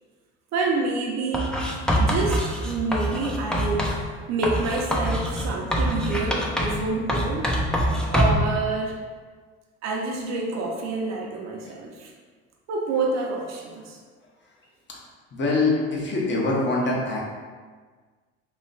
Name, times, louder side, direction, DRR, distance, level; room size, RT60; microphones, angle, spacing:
voice 1, 0.5-7.5 8.1-9.0 9.8-12.1 12.7-14.0, right 3 dB, 55° right, 0 dB, 0.9 m, -28 dB
Writing, 1.3-4.0 4.4-6.8 7.1-8.5, equal, 5° left, 0.6 m, -24 dB
voice 2, 15.3-17.2, left 2 dB, 35° left, -3 dB, 1.1 m, -23 dB
3.1 x 3.0 x 3.9 m, 1.5 s
hypercardioid pair, 60°, 32 cm